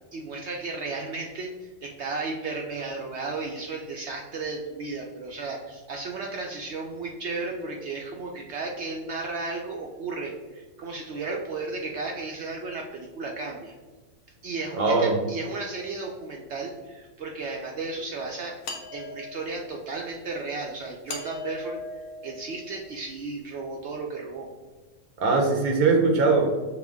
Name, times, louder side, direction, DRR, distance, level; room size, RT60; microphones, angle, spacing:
voice 1, 0.1-13.7 14.4-18.6 18.9-24.5, right 3 dB, 65° right, 0 dB, 0.7 m, -34 dB
voice 2, 14.8-15.2 25.2-26.5, right 3 dB, 80° right, 2 dB, 1.1 m, -21 dB
sound 1, 18.6-19.7 21.1-23.0, left 3 dB, 80° left, 1.2 m, -39 dB
5.8 x 2.2 x 3.4 m, 1.3 s
omnidirectional pair, 1.5 m